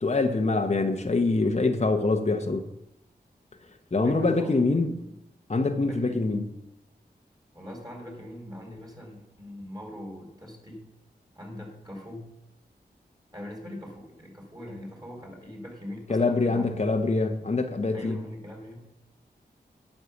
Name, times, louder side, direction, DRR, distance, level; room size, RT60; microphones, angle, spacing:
voice 1, 0.0-2.6 3.9-5.0 5.5-6.5 16.1-18.2, left 3 dB, 40° left, 1.0 m, -24 dB
voice 2, 4.0-4.8 5.8-6.5 7.5-10.8 11.3-12.3 13.3-16.8 17.9-18.8, equal, 20° right, 4.5 m, -42 dB
9.6 x 6.6 x 7.1 m
cardioid pair, 40°, 17 cm